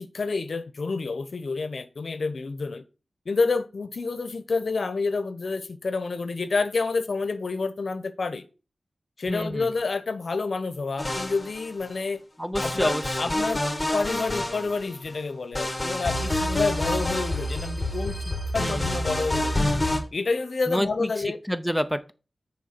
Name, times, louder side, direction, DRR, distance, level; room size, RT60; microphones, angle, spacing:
voice 1, 0.0-2.8 3.3-8.4 9.2-12.2 12.6-13.6 13.9-19.7 20.1-21.4, left 4 dB, 65° left, 0.8 m, -29 dB
voice 2, 9.3-9.7 12.4-13.4 18.6-19.0 20.7-22.1, equal, ahead, 0.6 m, -29 dB
sound 1, 11.0-11.9 12.5-15.1 15.5-20.0, left 1 dB, 15° left, 1.6 m, -27 dB
6.7 x 4.7 x 6.6 m
wide cardioid pair, 105°, 0 cm